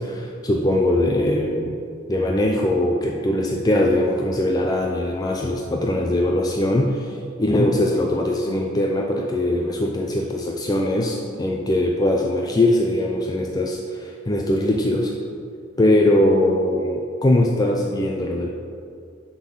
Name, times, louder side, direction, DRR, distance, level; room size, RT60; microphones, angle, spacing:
voice 1, 0.0-1.8 2.1-15.1 15.8-18.5, left 1 dB, 20° left, 0 dB, 0.4 m, -21 dB
7.1 x 3.8 x 6.2 m, 2.3 s
head